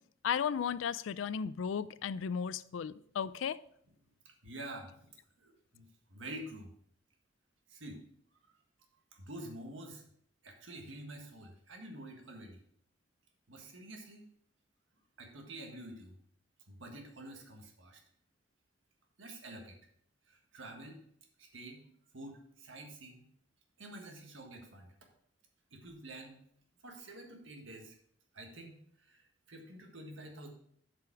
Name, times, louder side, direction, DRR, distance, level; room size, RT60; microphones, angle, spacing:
voice 1, 0.2-3.6, left 7 dB, 80° left, 0.4 m, -35 dB
voice 2, 4.2-4.9 5.4-6.7 7.7-8.0 8.4-8.5 9.1-10.0 10.4-12.6 13.5-14.3 15.2-16.2 16.7-18.0 19.2-19.8 20.3-21.0 21.4-21.9 22.1-23.3 23.8-24.9 25.7-26.4 26.8-28.0 28.3-30.5, right 1 dB, 80° right, 1.6 m, -48 dB
8.2 x 5.1 x 4.6 m
head